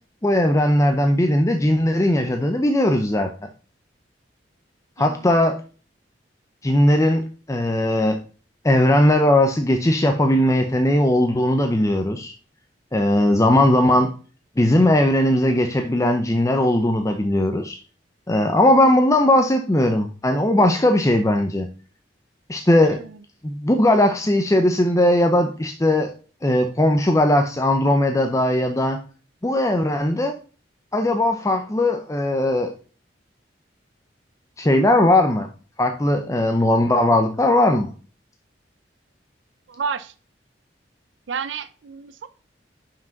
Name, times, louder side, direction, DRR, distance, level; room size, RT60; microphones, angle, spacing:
voice 1, 0.2-3.5 5.0-5.6 6.6-8.2 8.6-12.3 12.9-14.1 14.6-17.8 18.3-21.7 22.5-23.0 23.4-26.1 26.4-29.0 29.4-30.4 30.9-32.7 34.6-35.5 35.8-37.9, left 1 dB, 15° left, 5 dB, 0.6 m, -18 dB
voice 2, 39.7-40.1 41.3-42.3, right 6 dB, 85° right, 12 dB, 0.5 m, -30 dB
6.0 x 4.9 x 5.8 m, 0.39 s
head